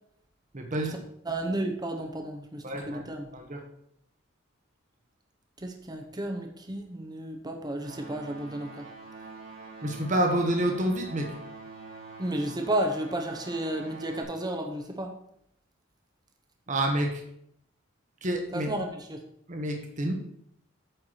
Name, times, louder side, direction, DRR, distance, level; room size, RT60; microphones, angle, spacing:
voice 1, 0.5-0.9 2.6-3.0 3.3-3.6 9.8-11.3 16.7-17.2 18.2-18.7 19.5-20.1, right 1 dB, 40° right, 3 dB, 1.2 m, -28 dB
voice 2, 1.3-3.3 5.6-8.9 12.2-15.1 18.5-19.2, right 1 dB, 20° right, 3 dB, 0.9 m, -32 dB
sound 1, 7.8-14.2, right 3 dB, 90° right, 3.5 m, -45 dB
9.0 x 4.6 x 6.4 m, 0.72 s
head